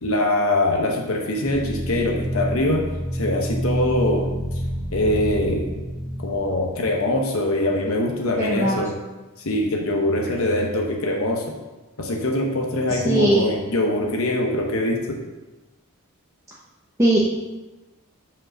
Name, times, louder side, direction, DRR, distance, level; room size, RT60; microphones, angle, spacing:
voice 1, 0.0-2.8 3.1-4.3 4.9-5.7 6.2-8.9 9.4-11.5 12.0-15.2, left 1 dB, 70° left, 1 dB, 0.9 m, -23 dB
sound 1, 1.5-7.2, equal, 35° right, 1.2 m, -28 dB
voice 2, 8.4-8.8 13.1-13.5 17.0-17.3, right 1 dB, 15° right, -6 dB, 0.8 m, -19 dB
5.5 x 5.1 x 6.1 m, 1.1 s
head